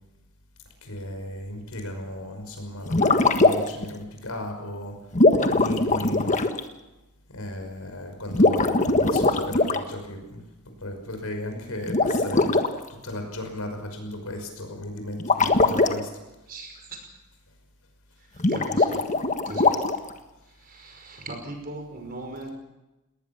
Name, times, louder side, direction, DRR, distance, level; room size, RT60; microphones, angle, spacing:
voice 1, 0.7-5.0 5.4-6.3 7.3-12.6 12.9-16.1, left 1 dB, 75° left, 5 dB, 5.6 m, -36 dB
sound 1, 2.9-3.9 5.1-6.6 8.3-9.8 11.9-12.7 15.2-15.9 18.4-20.1, left 2 dB, 35° left, 1.4 m, -21 dB
voice 2, 16.5-17.0 18.2-19.0 19.4-19.8 20.5-22.5, right 2 dB, 40° right, 4 dB, 5.4 m, -39 dB
20.0 x 19.0 x 7.2 m, 1.0 s
head